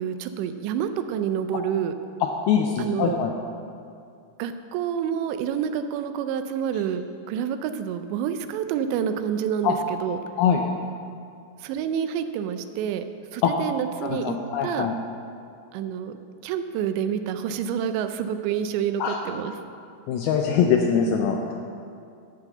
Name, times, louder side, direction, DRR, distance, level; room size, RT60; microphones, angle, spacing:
voice 1, 0.0-1.9 2.8-3.2 4.4-10.2 11.6-13.1 13.3-14.9 15.7-16.2 16.4-19.5, right 8 dB, 90° right, 9 dB, 2.8 m, -28 dB
voice 2, 2.5-3.3 9.6-9.7 10.4-10.6 13.4-13.5 14.0-15.0 19.0-19.2 20.1-21.5, left 7 dB, 85° left, 2 dB, 2.2 m, -23 dB
10.5 x 4.8 x 7.7 m, 2.4 s
omnidirectional pair, 5.0 m